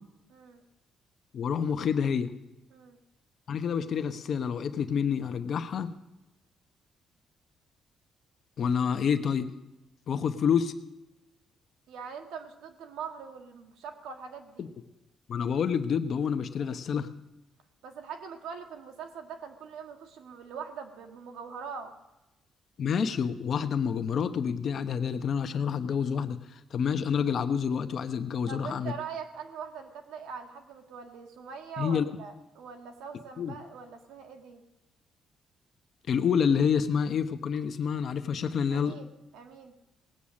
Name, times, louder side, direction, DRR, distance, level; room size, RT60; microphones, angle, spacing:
voice 1, 0.3-0.6 2.7-3.0 11.9-14.7 17.8-21.9 28.5-34.6 38.7-39.1 39.3-39.7, right 6 dB, 90° right, 5 dB, 1.6 m, -42 dB
voice 2, 1.3-2.3 3.5-5.9 8.6-9.5 10.1-10.7 14.6-14.7 15.3-17.1 22.8-28.9 31.8-32.1 33.4-33.5 36.1-39.0, left 7 dB, 60° left, 9 dB, 1.0 m, -28 dB
18.5 x 8.7 x 6.4 m, 0.99 s
cardioid pair, 90°, 0 cm